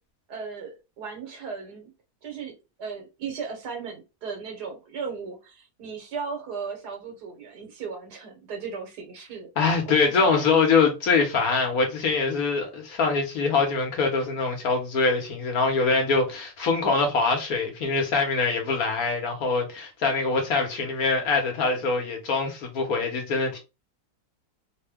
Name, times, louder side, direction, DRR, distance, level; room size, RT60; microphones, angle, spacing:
voice 1, 0.3-1.9 2.2-2.5 2.8-9.8 10.3-10.5, right 5 dB, 85° right, 1.7 m, -36 dB
voice 2, 9.6-23.6, left 4 dB, 65° left, 1.4 m, -24 dB
3.7 x 2.2 x 3.4 m
omnidirectional pair, 1.7 m